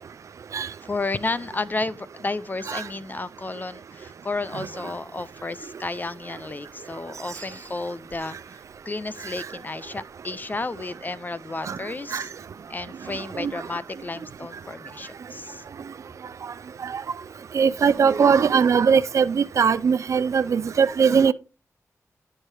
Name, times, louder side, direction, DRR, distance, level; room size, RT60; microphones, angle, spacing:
voice 1, 0.8-12.3 12.7-15.6, left 3 dB, 30° left, 0.4 m, -32 dB
voice 2, 17.5-21.3, right 6 dB, 60° right, 0.4 m, -20 dB
11.0 x 4.6 x 3.2 m
cardioid pair, 65°, 6 cm